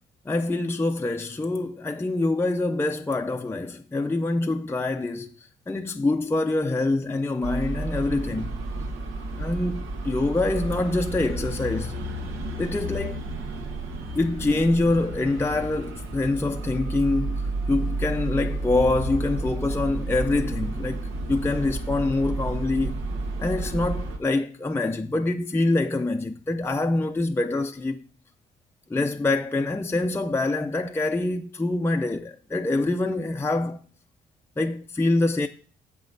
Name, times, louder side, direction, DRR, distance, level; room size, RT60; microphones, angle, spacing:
voice 1, 0.3-8.6 9.3-12.0 12.6-13.2 14.1-23.0 23.4-28.0 28.9-33.8 34.6-35.5, left 2 dB, 10° left, 0.5 m, -25 dB
sound 1, 7.4-24.2, right 2 dB, 80° right, 1.5 m, -31 dB
7.4 x 5.7 x 5.3 m
cardioid pair, 90°, 20 cm